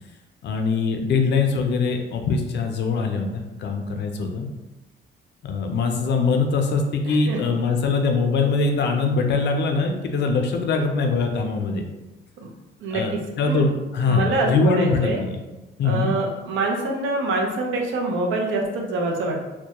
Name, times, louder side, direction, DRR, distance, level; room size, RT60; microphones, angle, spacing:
voice 1, 0.4-4.5 5.4-11.8 12.9-15.4 15.8-16.2, left 4 dB, 60° left, 4 dB, 0.4 m, -22 dB
voice 2, 7.0-7.4 12.4-12.5 12.8-13.6 14.0-15.2 15.8-19.5, right 2 dB, 75° right, 1 dB, 0.5 m, -25 dB
2.2 x 2.0 x 2.8 m, 1.1 s
cardioid pair, 90°, 20 cm